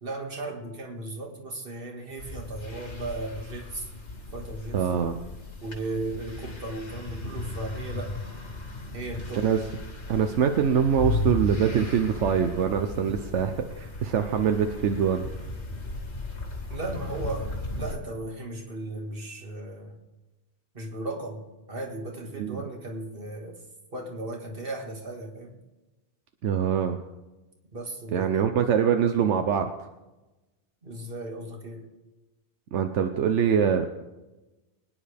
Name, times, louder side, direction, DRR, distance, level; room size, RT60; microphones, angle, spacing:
voice 1, 0.0-3.9 4.3-4.9 5.6-8.2 8.9-9.8 16.7-17.5 17.8-20.0 20.7-23.6 23.9-25.5 27.7-28.5 30.8-31.9, right 2 dB, 50° right, 2 dB, 2.1 m, -36 dB
sound 1, 2.2-18.0, left 2 dB, 75° left, 2.1 m, -35 dB
voice 2, 4.7-5.1 9.3-9.6 10.1-15.3 22.4-22.6 26.4-27.0 28.1-29.7 32.7-34.0, right 7 dB, 85° right, 6 dB, 1.1 m, -24 dB
23.5 x 9.8 x 3.4 m, 1.1 s
omnidirectional pair, 1.2 m